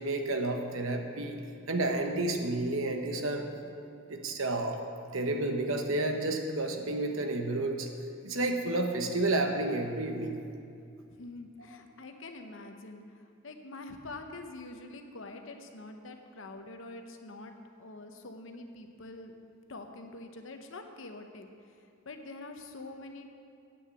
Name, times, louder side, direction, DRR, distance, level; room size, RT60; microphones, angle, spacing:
voice 1, 0.0-1.4 1.7-3.5 4.1-4.8 5.1-7.9 8.2-10.4 11.6-11.7, right 2 dB, 70° right, 4 dB, 1.0 m, -30 dB
voice 2, 11.1-17.5 17.8-19.4 19.7-23.3, left 2 dB, 60° left, 5 dB, 0.8 m, -45 dB
8.7 x 6.5 x 7.6 m, 2.5 s
head